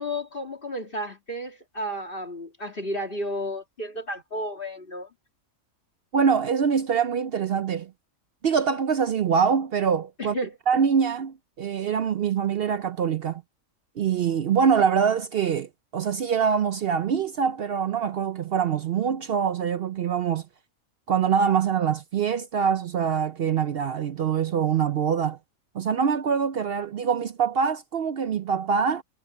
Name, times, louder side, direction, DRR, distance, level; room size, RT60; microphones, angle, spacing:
voice 1, 0.0-5.1 10.2-10.6, equal, 40° left, 2.4 m, -32 dB
voice 2, 6.1-7.9 8.4-10.4 10.7-13.4 14.0-20.5 21.1-25.4 25.7-29.0, right 7 dB, 60° right, 0.6 m, -24 dB
omnidirectional pair, 1.5 m